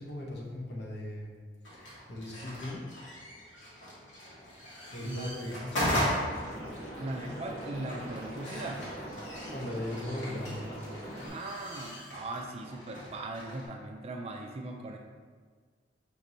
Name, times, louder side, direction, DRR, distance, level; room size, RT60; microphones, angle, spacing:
voice 1, 0.0-1.3 1.7-2.8 4.9-6.2 9.5-10.6, left 1 dB, 65° left, -2 dB, 0.9 m, -39 dB
sound 1, 1.6-13.7, equal, 90° left, 1.2 m, -38 dB
voice 2, 5.0-5.6 7.0-8.9 11.3-15.0, right 2 dB, 35° right, 2 dB, 0.4 m, -39 dB
Liquid, 6.3-11.3, equal, 40° left, 1.2 m, -42 dB
5.1 x 3.0 x 2.6 m, 1.5 s
head